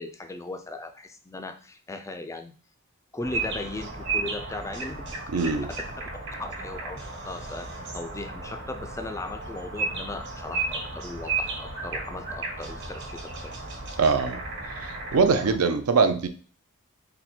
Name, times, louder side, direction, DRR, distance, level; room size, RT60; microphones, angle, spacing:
voice 1, 0.0-2.5 3.1-4.9 6.4-13.5, left 2 dB, 15° left, 7 dB, 0.3 m, -37 dB
sound 1, 3.2-15.6, right 3 dB, 55° right, 1.2 m, -34 dB
voice 2, 5.3-5.7 14.0-14.4 14.8-16.3, right 4 dB, 80° right, 9 dB, 0.5 m, -22 dB
3.9 x 2.1 x 4.3 m, 0.40 s
head